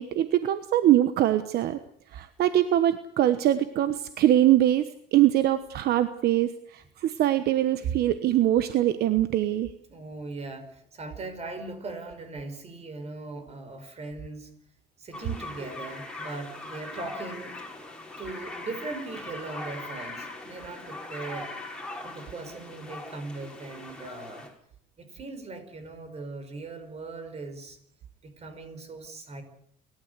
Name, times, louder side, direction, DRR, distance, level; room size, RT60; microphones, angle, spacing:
voice 1, 0.0-1.8 2.1-9.7, right 13 dB, 70° right, 11 dB, 1.2 m, -23 dB
voice 2, 9.9-14.5 15.0-17.6 18.2-21.5 22.0-24.5 25.0-27.8 28.2-29.4, right 3 dB, 40° right, 8 dB, 5.3 m, -39 dB
sound 1, 15.1-24.5, left 2 dB, 5° left, 5.5 m, -40 dB
28.5 x 13.0 x 8.2 m, 0.69 s
cardioid pair, 110°, 17 cm